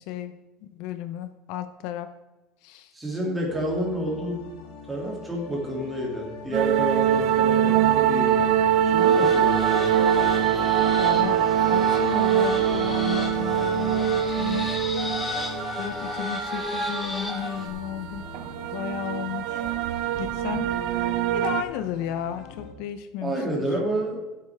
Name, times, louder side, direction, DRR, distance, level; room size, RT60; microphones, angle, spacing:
voice 1, 0.0-2.1 2.6-2.9 11.0-14.7 15.8-18.3 18.7-19.7 20.2-20.7 21.3-23.7, left 11 dB, 65° left, 10 dB, 0.7 m, -34 dB
voice 2, 2.9-4.5 4.9-8.5 8.9-9.9 23.2-24.2, right 1 dB, 10° right, -2 dB, 2.9 m, -29 dB
sound 1, 3.5-22.7, left 4 dB, 85° left, 3.1 m, -44 dB
sound 2, 6.5-21.6, right 10 dB, 55° right, 0.7 m, -23 dB
sound 3, 9.0-17.7, left 2 dB, 10° left, 2.2 m, -33 dB
15.5 x 8.2 x 3.6 m, 1.1 s
cardioid pair, 160°, 0 cm